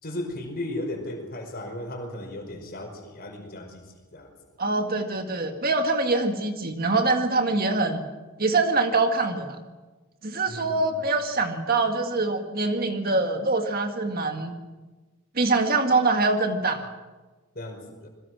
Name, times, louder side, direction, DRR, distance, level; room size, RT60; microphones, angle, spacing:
voice 1, 0.0-3.8 4.1-4.3 10.5-11.0 17.5-18.1, left 1 dB, 45° left, 4 dB, 5.2 m, -35 dB
voice 2, 4.6-8.0 8.4-9.6 10.2-14.6 15.3-16.9, right 3 dB, 45° right, 5 dB, 1.8 m, -24 dB
27.5 x 21.5 x 6.2 m, 1.2 s
head